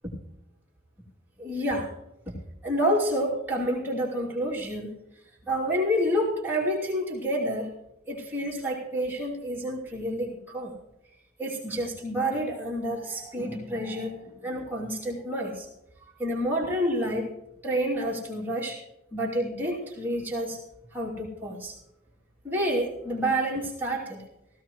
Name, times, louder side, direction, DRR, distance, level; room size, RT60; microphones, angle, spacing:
voice 1, 1.4-1.9 2.3-2.4 2.6-4.9 5.4-7.7 8.1-10.7 11.4-15.7 16.2-17.3 17.6-18.8 19.1-20.6 20.9-21.7 22.4-24.2, equal, 10° right, -5 dB, 2.7 m, -29 dB
17.0 x 15.0 x 3.1 m, 0.88 s
head